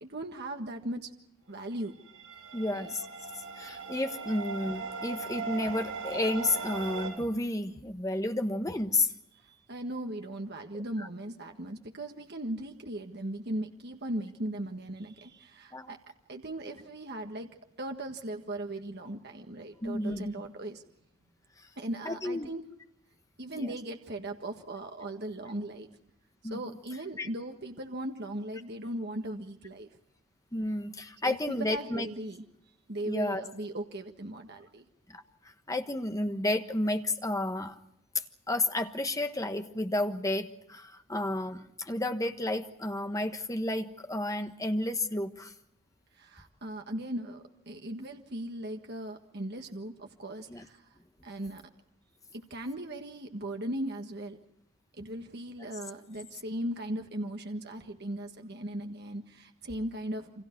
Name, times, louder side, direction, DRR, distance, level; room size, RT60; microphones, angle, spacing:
voice 1, 0.0-1.1 1.5-2.0 2.7-2.9 9.3-16.0 16.3-20.8 21.8-22.6 23.4-25.9 26.5-29.9 31.2-32.4 32.9-34.9 46.2-50.9 51.2-51.7 52.3-54.4 55.0-60.4, right 1 dB, 50° right, 4 dB, 1.7 m, -38 dB
sound 1, 2.1-7.1, right 4 dB, 90° right, 7.5 m, -39 dB
voice 2, 2.5-3.1 3.6-9.1 11.0-11.1 15.7-16.0 19.8-20.3 22.0-22.5 23.5-23.7 26.4-26.8 27.2-27.3 30.5-32.1 33.0-33.4 35.1-35.2 35.7-37.7 38.5-45.5 50.5-50.6, left 1 dB, 15° left, 7 dB, 1.3 m, -31 dB
29.5 x 25.5 x 4.6 m, 0.76 s
head